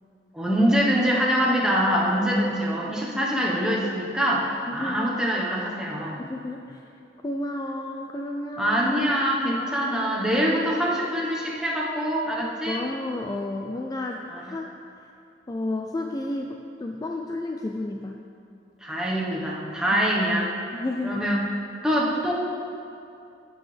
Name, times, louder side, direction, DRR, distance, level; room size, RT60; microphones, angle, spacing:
voice 1, 0.3-6.2 8.6-12.8 14.3-14.4 18.8-20.5 21.0-21.4 21.8-22.3, equal, 5° right, -4 dB, 1.1 m, -24 dB
voice 2, 4.7-5.1 6.2-6.8 7.2-8.8 9.6-9.9 12.4-14.7 15.0-15.1 15.5-18.2 19.9-20.0 20.7-21.2, left 2 dB, 20° left, 1 dB, 0.4 m, -32 dB
14.0 x 6.2 x 3.4 m, 2.6 s
head